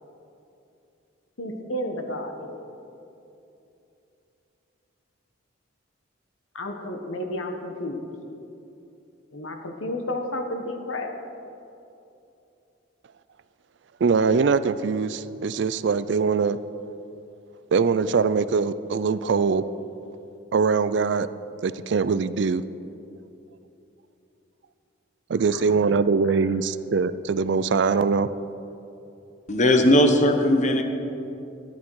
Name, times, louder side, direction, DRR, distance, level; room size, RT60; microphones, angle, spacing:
voice 1, 1.4-2.6 6.5-8.1 9.3-11.1 25.5-25.8 26.3-26.4, left 1 dB, 80° left, 4 dB, 1.3 m, -32 dB
voice 2, 14.0-16.6 17.7-19.6 20.5-21.3 21.6-22.6 25.3-28.3, right 5 dB, 60° right, 15 dB, 0.4 m, -22 dB
voice 3, 29.5-30.8, left 1 dB, 35° left, 5 dB, 0.9 m, -18 dB
13.5 x 10.5 x 4.7 m, 2.8 s
head